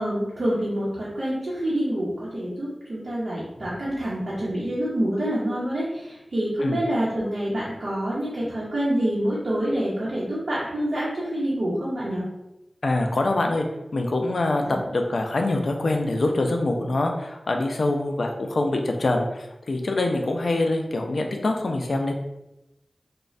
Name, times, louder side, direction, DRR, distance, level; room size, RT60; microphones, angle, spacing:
voice 1, 0.0-12.2 14.6-14.7, right 1 dB, 75° right, -8 dB, 0.7 m, -27 dB
voice 2, 12.8-13.7 13.9-22.1, left 2 dB, 80° left, 3 dB, 0.3 m, -24 dB
3.0 x 2.1 x 2.5 m, 0.92 s
wide cardioid pair, 60°, 0 cm